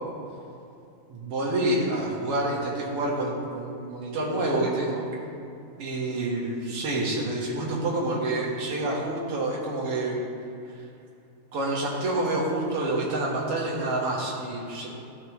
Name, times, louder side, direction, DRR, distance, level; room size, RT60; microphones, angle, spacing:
voice 1, 1.1-5.0 5.8-10.2 11.5-14.9, right 2 dB, 55° right, -4 dB, 2.1 m, -28 dB
13.0 x 6.3 x 3.1 m, 2.6 s
omnidirectional pair, 3.6 m